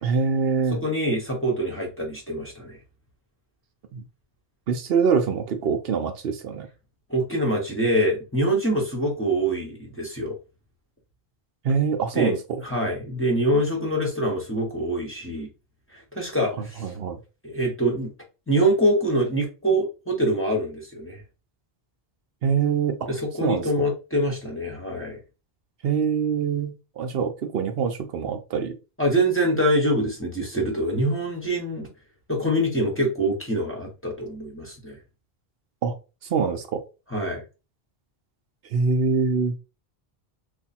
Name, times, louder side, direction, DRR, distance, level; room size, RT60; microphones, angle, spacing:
voice 1, 0.0-0.8 3.9-4.0 4.7-6.7 11.6-12.6 16.6-17.2 22.4-23.1 23.4-23.7 25.8-28.7 35.8-35.9 36.3-36.8 38.7-39.5, right 6 dB, 70° right, 0.8 m, -24 dB
voice 2, 0.7-2.8 7.1-10.3 12.1-12.3 12.6-15.5 15.9-16.9 17.4-18.1 18.5-21.2 23.1-25.2 29.0-31.9 32.3-35.0 37.1-37.4, right 1 dB, 15° left, 1.1 m, -25 dB
3.3 x 2.4 x 4.2 m
omnidirectional pair, 1.0 m